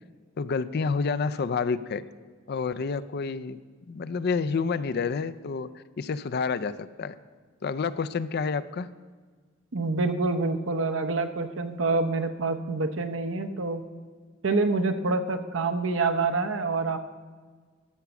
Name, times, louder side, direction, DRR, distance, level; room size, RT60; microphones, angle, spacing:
voice 1, 0.4-2.0 2.5-3.6 3.9-5.7 6.0-7.1 7.6-8.9, left 5 dB, 50° left, 15 dB, 0.4 m, -29 dB
voice 2, 9.7-13.8 14.4-17.0, right 3 dB, 70° right, 8 dB, 0.8 m, -26 dB
13.0 x 6.0 x 6.9 m, 1.5 s
head